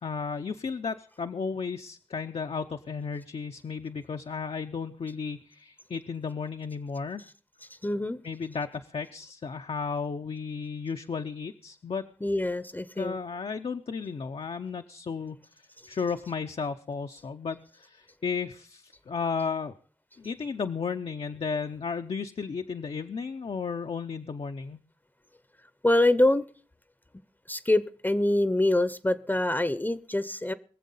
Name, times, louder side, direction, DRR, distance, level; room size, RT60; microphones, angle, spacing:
voice 1, 0.0-7.2 8.2-12.0 13.0-19.7 20.2-24.8, left 5 dB, 70° left, 6 dB, 0.6 m, -34 dB
voice 2, 7.8-8.2 12.2-13.2 25.8-26.5 27.5-30.5, left 1 dB, 20° left, 15 dB, 0.6 m, -25 dB
22.0 x 7.4 x 5.4 m, 0.41 s
cardioid pair, 55°, 10 cm